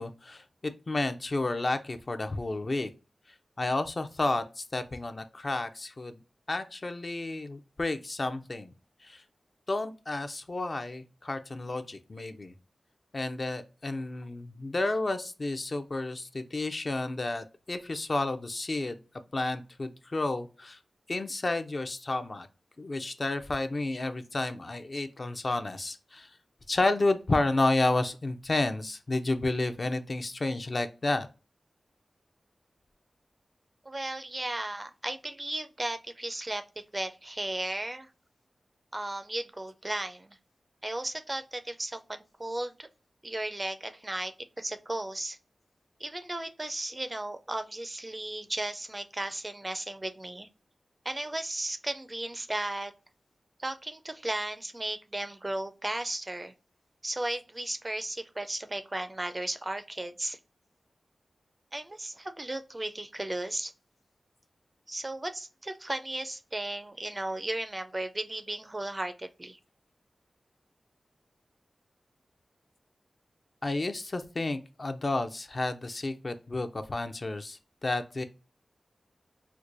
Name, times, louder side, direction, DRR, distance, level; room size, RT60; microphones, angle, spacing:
voice 1, 0.0-2.9 3.6-6.2 6.5-8.7 9.0-9.2 9.7-12.5 13.1-19.0 19.3-20.8 21.1-22.5 22.8-26.3 26.7-31.3 73.6-78.2, left 2 dB, 45° left, 8 dB, 0.4 m, -31 dB
voice 2, 33.9-38.1 38.9-40.4 40.8-42.9 43.2-44.3 44.6-45.4 46.0-50.5 51.1-52.9 53.6-56.5 57.0-60.4 61.7-63.7 64.9-69.6, right 1 dB, 25° right, 9 dB, 0.4 m, -35 dB
4.5 x 2.2 x 2.5 m, 0.32 s
wide cardioid pair, 70°, 0 cm